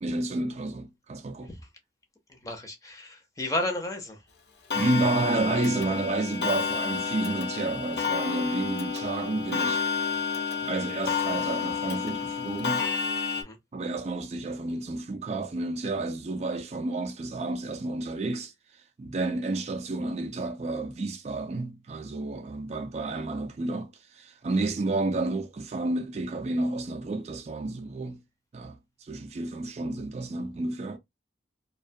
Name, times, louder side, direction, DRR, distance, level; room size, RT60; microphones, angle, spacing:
voice 1, 0.0-1.5 4.7-9.8 10.6-12.9 13.7-18.5 19.0-28.2 28.5-31.0, right 2 dB, 35° right, 0.3 m, -30 dB
voice 2, 2.4-4.2 13.4-13.6, left 1 dB, 20° left, 0.5 m, -32 dB
Clock, 4.7-13.4, left 6 dB, 65° left, 0.6 m, -30 dB
2.5 x 2.2 x 2.6 m
head